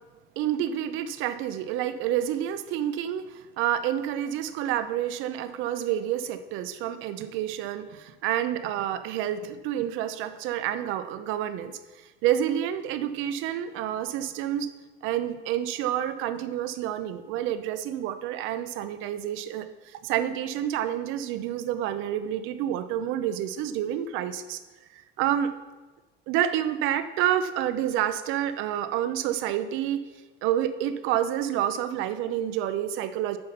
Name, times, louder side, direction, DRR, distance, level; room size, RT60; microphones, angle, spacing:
voice 1, 0.4-11.8 12.2-14.7 15.0-24.6 24.9-25.5 26.3-30.0 30.4-33.4, right 11 dB, 80° right, 11 dB, 0.6 m, -29 dB
8.6 x 5.6 x 5.7 m, 1.2 s
cardioid pair, 160°, 20 cm